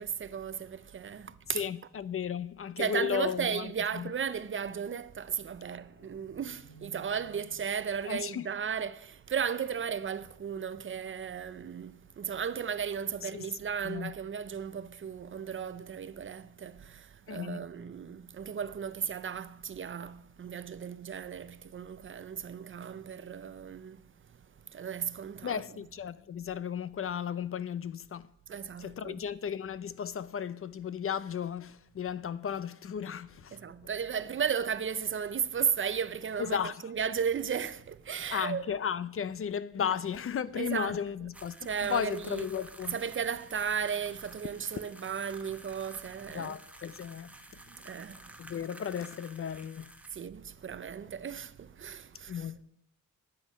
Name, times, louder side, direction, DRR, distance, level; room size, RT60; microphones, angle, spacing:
voice 1, 0.0-1.7 2.8-25.6 28.5-29.2 33.5-38.7 39.8-39.9 40.6-40.9 41.6-42.5 42.9-46.6 47.7-48.4 50.1-52.5, right 7 dB, 40° right, 0.5 m, -35 dB
voice 2, 1.5-3.7 3.9-4.1 8.1-8.5 13.3-13.4 13.8-14.1 17.3-17.6 25.4-28.3 28.8-33.6 36.5-36.8 38.3-41.6 41.9-43.0 46.3-47.3 48.4-49.9 52.3-52.6, left 8 dB, 40° left, 0.5 m, -34 dB
sound 1, 5.9-9.3, right 5 dB, 65° left, 1.8 m, -57 dB
sound 2, 41.3-50.3, right 1 dB, 5° right, 1.0 m, -52 dB
10.5 x 9.0 x 5.5 m
cardioid pair, 110°, 32 cm